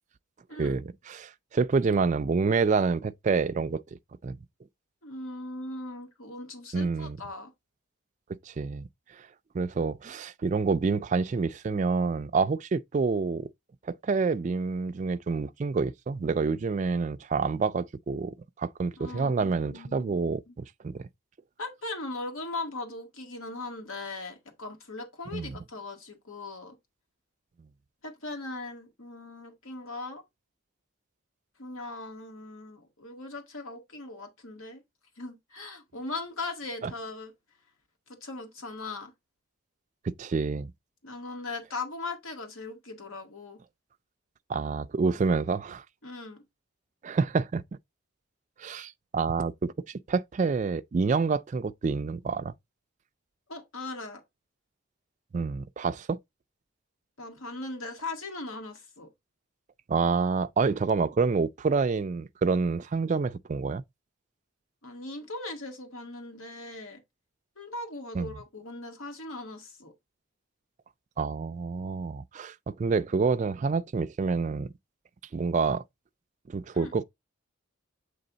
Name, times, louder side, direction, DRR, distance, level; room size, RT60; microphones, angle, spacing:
voice 1, 0.6-3.8 4.2-4.4 6.7-7.2 8.5-8.9 9.5-13.5 14.0-20.4 20.8-21.1 25.3-25.6 36.8-36.9 40.1-40.7 44.5-45.8 47.0-47.6 48.6-52.5 55.3-56.2 59.9-63.8 68.1-68.3 71.2-74.7 75.3-75.8 76.5-77.0, right 4 dB, 35° right, 0.3 m, -28 dB
voice 2, 5.0-7.5 19.0-20.5 21.6-26.7 28.0-30.2 31.6-34.8 35.2-37.3 38.2-39.1 41.0-43.6 46.0-46.4 53.5-54.2 57.2-59.1 64.8-67.0 67.6-69.9 76.7-76.9, left 2 dB, 80° left, 1.7 m, -39 dB
7.7 x 3.3 x 3.9 m
head